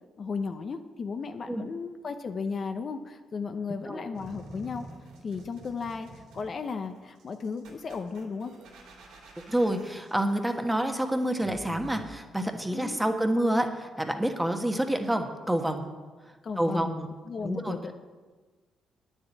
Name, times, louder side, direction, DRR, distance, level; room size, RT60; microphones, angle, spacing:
voice 1, 0.2-4.9 5.2-6.1 6.3-8.5 12.7-13.0 16.4-17.0 17.3-17.9, left 5 dB, 45° left, 7 dB, 0.8 m, -35 dB
sound 1, 4.1-12.1, right 2 dB, 90° right, 2.8 m, -49 dB
voice 2, 9.4-15.8 16.6-17.1 17.4-17.8, right 1 dB, 10° right, 5 dB, 1.4 m, -28 dB
9.4 x 7.4 x 9.2 m, 1.3 s
cardioid pair, 90°, 0 cm